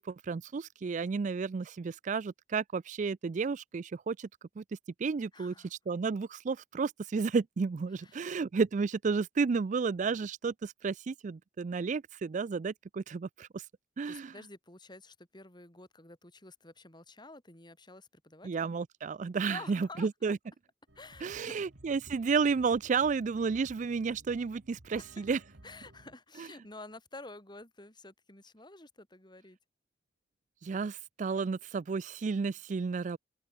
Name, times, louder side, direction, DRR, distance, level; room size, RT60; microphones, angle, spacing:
voice 1, 0.0-4.3 4.6-4.7 5.0-13.7 14.0-14.3 18.4-20.4 21.2-25.4 26.4-26.5 30.6-33.2, right 5 dB, 45° right, 0.4 m, -32 dB
voice 2, 5.3-5.7 7.9-8.3 14.1-18.7 19.5-20.1 20.9-21.6 25.0-25.2 25.6-29.6 30.7-30.9, left 2 dB, 25° left, 5.1 m, -50 dB
sound 1, 20.9-26.2, right 1 dB, 75° right, 2.2 m, -56 dB
head